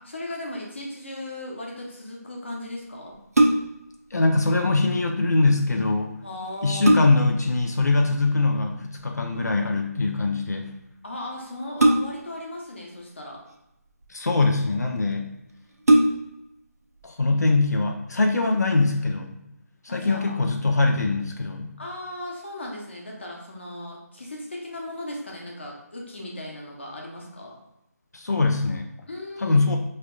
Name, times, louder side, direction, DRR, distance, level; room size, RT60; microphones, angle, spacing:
voice 1, 0.0-3.2 6.2-7.0 11.0-13.4 19.9-20.4 21.8-27.5 29.1-29.6, left 1 dB, 45° left, -2 dB, 1.0 m, -37 dB
sound 1, 3.1-3.9 5.9-6.0 6.5-7.4 9.0-9.3 11.8-12.4 13.4-14.1 14.8-14.9 15.2-15.3 15.8-16.5 17.0-17.1, right 1 dB, 65° right, 0.6 m, -21 dB
voice 2, 4.1-6.1 6.6-10.7 14.1-15.3 17.0-19.4 19.8-21.7 28.1-28.9 29.4-29.8, left 3 dB, 75° left, 2 dB, 0.6 m, -22 dB
4.9 x 3.2 x 2.3 m, 0.87 s
figure-of-eight pair, 180°, 9 cm